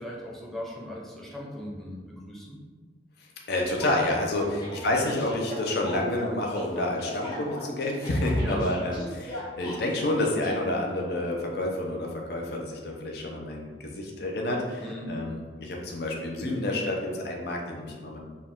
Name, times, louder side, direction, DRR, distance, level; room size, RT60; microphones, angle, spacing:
voice 1, 0.0-2.6 4.5-4.6 8.4-8.6 14.8-15.1, equal, ahead, -3 dB, 0.7 m, -38 dB
voice 2, 3.5-18.2, left 1 dB, 65° left, 0 dB, 0.6 m, -29 dB
sound 1, 3.8-10.5, equal, 25° left, 0.9 m, -38 dB
4.7 x 2.4 x 3.6 m, 1.4 s
head